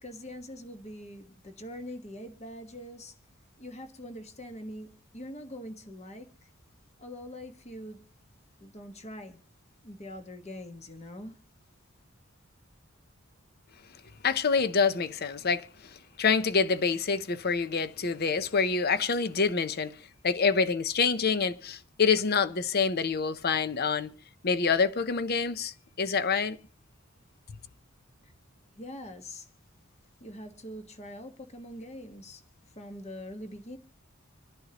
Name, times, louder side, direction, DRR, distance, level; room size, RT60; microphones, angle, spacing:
voice 1, 0.0-3.1 3.6-6.5 7.0-8.0 8.6-9.4 9.8-11.4 28.2-28.3 28.8-29.5 30.2-32.4 32.8-33.8, left 1 dB, 35° left, 1.5 m, -43 dB
voice 2, 14.2-20.0 20.2-24.1 24.4-26.6, left 5 dB, 50° left, 0.7 m, -27 dB
26.5 x 11.0 x 3.0 m
head